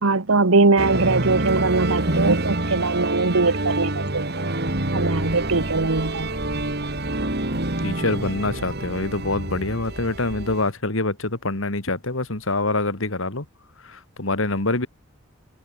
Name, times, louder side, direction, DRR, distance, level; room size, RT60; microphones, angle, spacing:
voice 1, 0.0-4.2 4.9-6.6, right 3 dB, 80° right, 1.3 m, -21 dB
sound 1, 0.8-10.7, right 2 dB, 50° right, 3.3 m, -27 dB
sound 2, 4.6-10.6, equal, 5° left, 3.8 m, -38 dB
voice 2, 7.8-13.5 13.8-14.9, left 2 dB, 70° left, 2.4 m, -25 dB
head